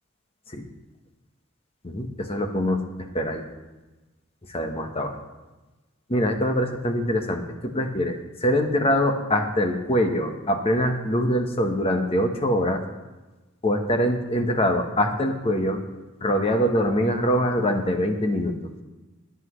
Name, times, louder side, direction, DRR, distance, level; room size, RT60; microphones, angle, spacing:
voice 1, 1.8-3.4 4.5-5.2 6.1-12.8 13.6-15.8 16.2-18.5, equal, 30° left, 5 dB, 1.1 m, -24 dB
22.5 x 8.1 x 3.2 m, 1.1 s
head